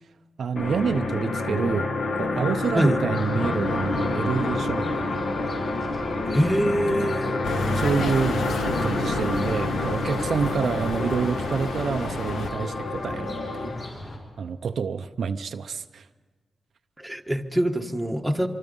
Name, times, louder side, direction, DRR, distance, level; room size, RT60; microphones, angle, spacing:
voice 1, 0.4-1.9 2.2-5.0 7.0-7.1 7.7-13.8 14.4-16.1, right 6 dB, 60° right, 8 dB, 0.6 m, -28 dB
sound 1, 0.6-13.9, left 2 dB, 55° left, 1.6 m, -28 dB
sound 2, 3.1-14.2, left 1 dB, 35° left, 5.7 m, -39 dB
voice 2, 6.3-7.4 17.0-18.5, equal, 5° right, 3 dB, 1.2 m, -24 dB
sound 3, 7.4-12.5, left 2 dB, 90° left, 2.0 m, -31 dB
25.5 x 24.5 x 5.3 m, 1.5 s
wide cardioid pair, 145°, 0 cm